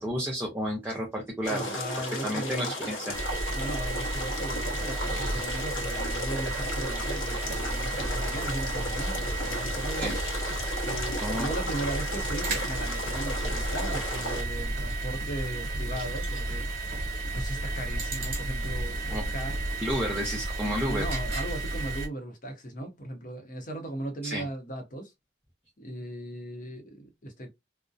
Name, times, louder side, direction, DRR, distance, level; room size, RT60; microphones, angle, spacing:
voice 1, 0.0-1.8 2.2-3.2 10.0-10.2 11.2-11.5 19.1-19.2 19.8-21.0 24.2-24.5, equal, 10° right, 0.6 m, -31 dB
sound 1, 1.4-14.4, left 1 dB, 85° left, 0.8 m, -35 dB
voice 2, 1.5-2.7 3.5-10.2 10.8-16.7 17.3-19.7 20.8-25.1 25.8-27.5, right 1 dB, 45° left, 0.7 m, -37 dB
sound 2, 3.1-22.1, right 2 dB, 50° right, 1.1 m, -32 dB
sound 3, 7.5-21.2, right 1 dB, 70° right, 0.6 m, -46 dB
2.6 x 2.1 x 2.3 m
head